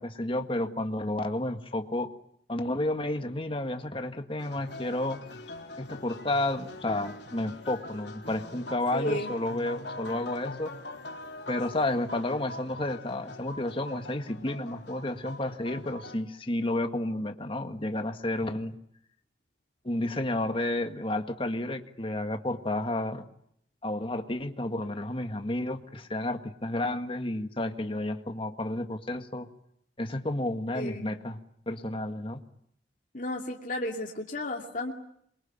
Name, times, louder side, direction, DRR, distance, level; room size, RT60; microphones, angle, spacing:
voice 1, 0.0-2.1 2.5-5.2 5.8-10.7 11.5-18.8 19.8-23.3 23.8-29.5 30.0-31.4 31.7-32.4, left 1 dB, 30° left, 7 dB, 1.8 m, -31 dB
sound 1, 4.4-16.2, left 2 dB, 80° left, 3.8 m, -43 dB
voice 2, 8.9-9.3 30.7-31.2 33.1-34.9, left 1 dB, 50° left, 0 dB, 2.7 m, -33 dB
27.5 x 23.5 x 8.9 m, 0.70 s
head